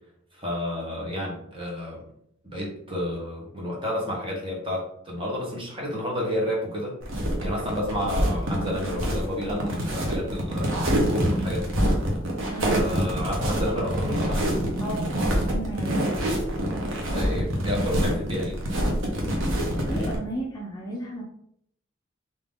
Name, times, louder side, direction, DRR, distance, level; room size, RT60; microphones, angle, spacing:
voice 1, 0.3-2.0 2.4-7.0 7.4-10.7 11.1-11.7 12.6-14.4 17.1-18.6, left 1 dB, 25° right, -3 dB, 1.3 m, -30 dB
sound 1, 7.0-20.2, equal, 75° right, 1.1 m, -26 dB
voice 2, 12.5-12.8 14.8-15.1 15.4-16.4 19.5-21.2, right 1 dB, 20° left, -3 dB, 0.6 m, -34 dB
3.7 x 2.9 x 3.7 m, 0.70 s
head